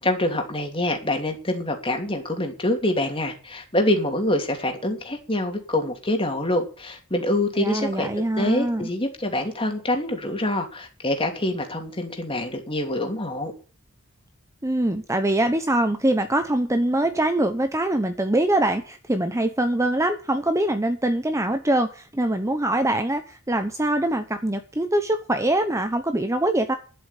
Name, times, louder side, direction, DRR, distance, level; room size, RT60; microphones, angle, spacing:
voice 1, 0.0-8.1 8.4-13.5, left 1 dB, 25° left, 4 dB, 2.8 m, -25 dB
voice 2, 7.6-8.9 14.6-26.7, right 1 dB, 15° right, 8 dB, 0.9 m, -23 dB
11.5 x 7.9 x 8.4 m, 0.37 s
head